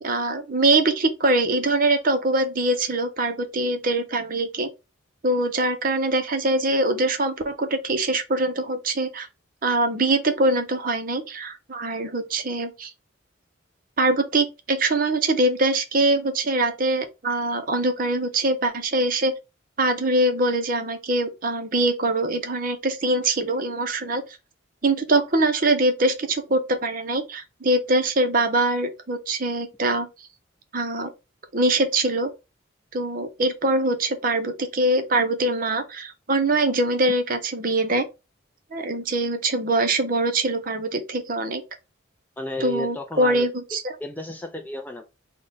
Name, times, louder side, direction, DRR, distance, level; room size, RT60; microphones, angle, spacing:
voice 1, 0.0-4.7 5.2-9.3 9.6-12.9 14.0-19.3 19.8-24.2 24.8-30.1 30.7-31.1 31.5-32.3 32.9-38.0 38.7-41.6 42.6-43.8, right 2 dB, 45° right, 0.6 m, -23 dB
voice 2, 42.4-43.5 44.0-45.1, left 2 dB, 10° left, 0.3 m, -33 dB
3.8 x 2.2 x 3.7 m
head